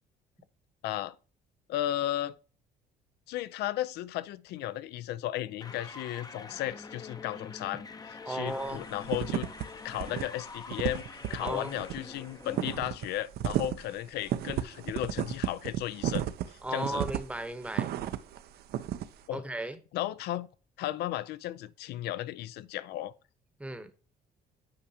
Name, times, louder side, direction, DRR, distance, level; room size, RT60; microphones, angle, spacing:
voice 1, 0.8-1.1 1.7-2.4 3.3-9.5 9.8-16.3 16.7-17.0 19.3-19.4 19.9-20.5 20.8-23.1, left 13 dB, 75° left, 0.5 m, -35 dB
sound 1, 5.6-12.8, left 4 dB, 20° left, 0.6 m, -46 dB
voice 2, 8.3-8.8 11.4-11.7 16.6-17.9 19.3-19.8 23.6-23.9, right 1 dB, 5° right, 0.9 m, -35 dB
sound 2, 8.5-8.7 9.0-9.6 9.9-10.2 10.5-18.4 18.7-19.1, right 12 dB, 70° right, 0.6 m, -33 dB
8.7 x 4.9 x 2.8 m
cardioid pair, 110°, 17 cm